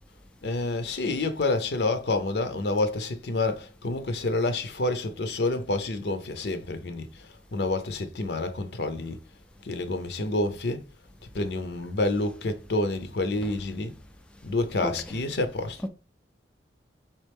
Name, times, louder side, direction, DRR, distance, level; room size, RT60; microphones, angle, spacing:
voice 1, 0.4-7.1 7.5-9.2 9.6-10.8 11.3-13.9 14.4-15.8, left 2 dB, 70° left, 0.6 m, -28 dB
voice 2, 14.8-15.2 15.8-15.9, equal, 5° left, 0.3 m, -34 dB
4.3 x 3.5 x 3.4 m
head